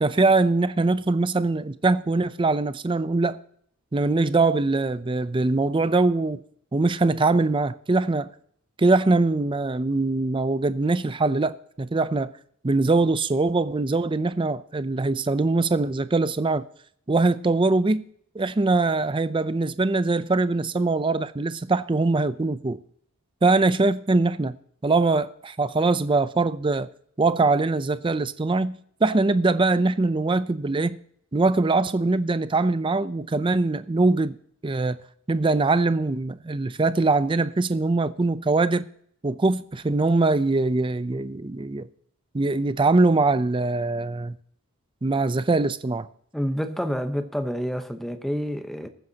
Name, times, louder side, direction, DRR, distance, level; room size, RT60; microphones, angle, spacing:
voice 1, 0.0-3.4 3.9-6.4 6.7-8.3 8.8-12.3 12.6-16.7 17.1-18.0 18.3-22.8 23.4-24.6 24.8-26.9 27.2-31.0 31.3-34.4 34.6-35.0 35.3-38.9 39.2-41.9 42.3-44.4 45.0-46.1, right 3 dB, 20° right, 0.4 m, -22 dB
voice 2, 46.3-48.9, equal, ahead, 0.9 m, -28 dB
21.5 x 9.2 x 2.8 m
head